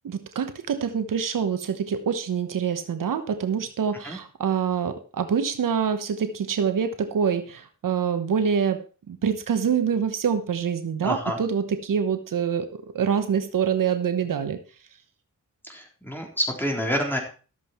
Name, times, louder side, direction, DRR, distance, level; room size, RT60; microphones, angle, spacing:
voice 1, 0.0-14.6, right 7 dB, 80° right, 9 dB, 1.2 m, -26 dB
voice 2, 11.0-11.4 15.6-17.2, equal, 5° left, 1 dB, 3.8 m, -28 dB
13.0 x 7.6 x 4.5 m, 0.37 s
cardioid pair, 65°, 32 cm